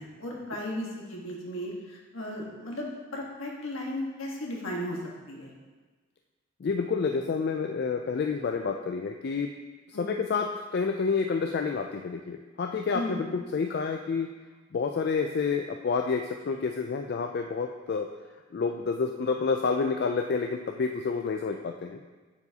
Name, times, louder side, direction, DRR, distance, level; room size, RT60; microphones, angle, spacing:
voice 1, 0.0-5.0 5.3-5.5 9.9-10.1 12.9-13.2, left 1 dB, 70° left, -2 dB, 1.4 m, -35 dB
voice 2, 6.6-9.5 10.0-14.3 14.7-18.1 18.5-22.0, left 5 dB, 45° left, 4 dB, 0.3 m, -29 dB
8.0 x 6.9 x 2.8 m, 1.3 s
head